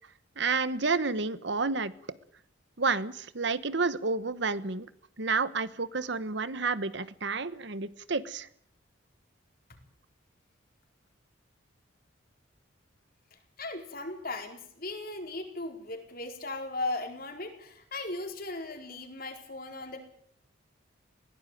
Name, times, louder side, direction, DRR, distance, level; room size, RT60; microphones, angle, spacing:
voice 1, 0.4-1.9 2.8-4.9 5.2-8.5, right 4 dB, 60° right, 1.1 m, -30 dB
voice 2, 13.3-20.0, left 2 dB, 45° left, 4.4 m, -37 dB
21.0 x 17.0 x 9.2 m
head